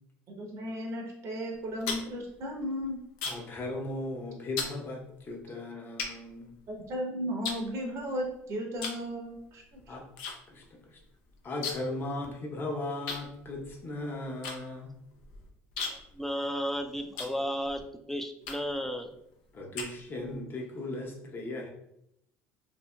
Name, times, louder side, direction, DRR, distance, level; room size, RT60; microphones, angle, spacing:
voice 1, 0.4-3.0 6.7-9.8, equal, 55° right, 0 dB, 0.7 m, -35 dB
sound 1, 1.5-3.6 3.9-4.2 4.6-4.8 5.4-5.5 6.0-7.0 7.4-8.3 8.8-9.1 9.4-10.4 10.6-10.7 11.0-12.0 12.3-12.4 13.1-17.8 18.4-18.8 19.3-20.4, left 4 dB, 85° left, 0.5 m, -38 dB
voice 2, 3.2-6.5 9.9-10.0 10.5-11.0 11.4-14.9 19.5-21.7, left 2 dB, 35° left, 0 dB, 0.7 m, -37 dB
voice 3, 15.9-17.8 18.1-19.1, equal, 5° left, 5 dB, 0.3 m, -33 dB
2.7 x 2.6 x 2.2 m, 0.78 s
supercardioid pair, 90°, 6 cm